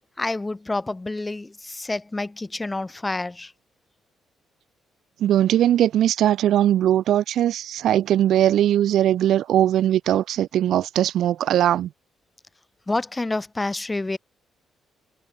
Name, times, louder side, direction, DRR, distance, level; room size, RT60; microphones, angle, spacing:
voice 1, 0.2-3.5 12.9-14.2, left 2 dB, 15° left, 4.1 m, -28 dB
voice 2, 5.2-11.9, right 11 dB, 75° right, 1.4 m, -20 dB
cardioid pair, 90°, 0 cm